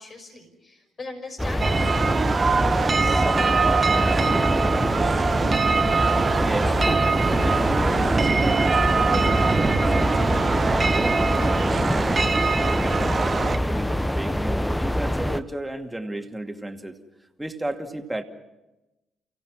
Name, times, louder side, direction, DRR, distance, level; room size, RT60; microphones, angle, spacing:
voice 1, 0.0-4.4, left 2 dB, 40° left, 4 dB, 5.8 m, -41 dB
sound 1, 1.4-15.4, left 1 dB, 5° left, 1.0 m, -25 dB
sound 2, 1.6-13.6, right 5 dB, 35° right, 1.1 m, -23 dB
voice 2, 6.3-6.8 7.4-11.0 11.4-12.3 12.8-17.0 17.4-18.2, right 1 dB, 10° right, 4 dB, 2.4 m, -34 dB
30.0 x 16.5 x 6.2 m, 0.99 s
hypercardioid pair, 45°, 0 cm